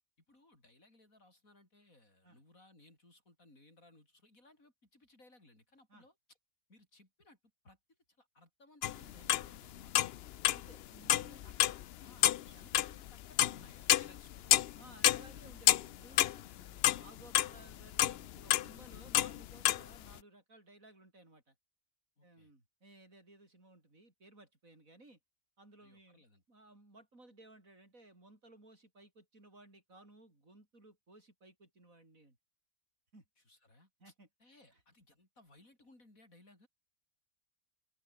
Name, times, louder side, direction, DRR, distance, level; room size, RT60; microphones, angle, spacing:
voice 1, 0.3-6.1 6.7-7.4 7.6-7.8 8.2-10.1 11.1-14.6 22.2-22.5 25.8-26.4 33.5-34.1 34.4-36.7, left 2 dB, 80° left, 7.2 m, -63 dB
sound 1, 8.8-9.5 9.8-10.7 11.1-11.8 12.1-14.8 15.0-17.5 17.9-19.8, left 12 dB, 65° left, 0.6 m, -28 dB
voice 2, 10.5-11.4 12.2-12.7 14.7-21.6 22.2-25.2 25.6-32.4 33.1-33.2 34.0-34.3 34.7-34.8, right 2 dB, 75° right, 7.0 m, -59 dB
open air
omnidirectional pair, 1.4 m